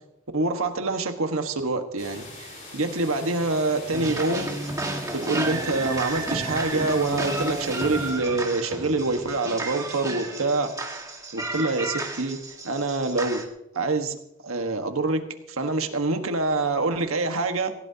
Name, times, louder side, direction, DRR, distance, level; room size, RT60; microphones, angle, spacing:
voice 1, 0.3-4.5 5.1-10.7 11.3-12.4 12.6-13.4 13.7-14.2 14.4-17.7, right 3 dB, 80° right, 6 dB, 1.5 m, -26 dB
sound 1, 2.0-8.1, left 2 dB, 40° left, 5.5 m, -42 dB
sound 2, 3.9-13.4, right 2 dB, 15° right, 1.7 m, -32 dB
19.0 x 16.5 x 2.9 m, 0.82 s
head